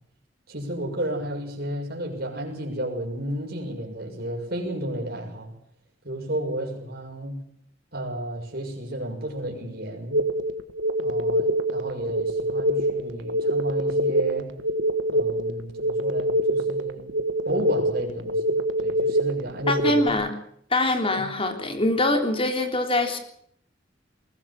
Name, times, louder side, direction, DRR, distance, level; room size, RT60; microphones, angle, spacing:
voice 1, 0.5-5.5 6.0-7.4 7.9-10.2 11.0-14.5 15.1-17.1 17.4-18.4 18.8-20.2 21.2-21.3, right 1 dB, 55° right, 6.8 m, -32 dB
sound 1, 10.1-20.1, right 1 dB, 75° right, 1.7 m, -25 dB
voice 2, 19.7-20.3 20.7-23.2, left 2 dB, 30° left, 3.5 m, -23 dB
22.0 x 19.0 x 7.5 m
head